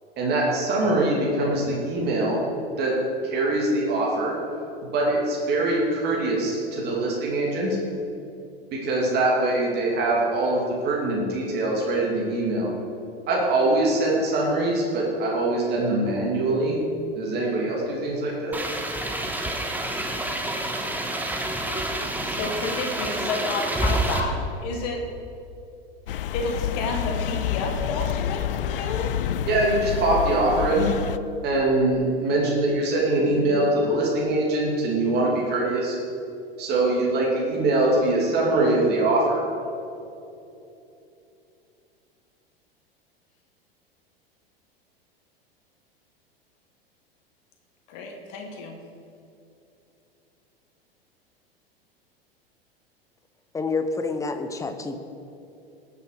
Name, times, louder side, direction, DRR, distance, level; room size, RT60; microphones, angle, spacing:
voice 1, 0.2-2.4 2.8-2.9 3.2-4.4 4.9-7.8 8.7-12.7 13.3-16.8 17.1-18.5 29.5-30.9 31.4-36.0 36.6-39.4, right 2 dB, 35° right, -3 dB, 2.9 m, -23 dB
sound 1, 18.5-24.2, right 1 dB, 5° right, 1.2 m, -28 dB
voice 2, 22.2-25.0 26.3-29.2 47.9-48.8, left 3 dB, 45° left, 2 dB, 1.7 m, -31 dB
sound 2, 26.1-31.2, left 9 dB, 65° left, 0.5 m, -28 dB
voice 3, 53.5-55.0, left 3 dB, 10° left, 8 dB, 0.9 m, -28 dB
19.0 x 7.4 x 5.1 m, 2.8 s
figure-of-eight pair, 85°, 30 cm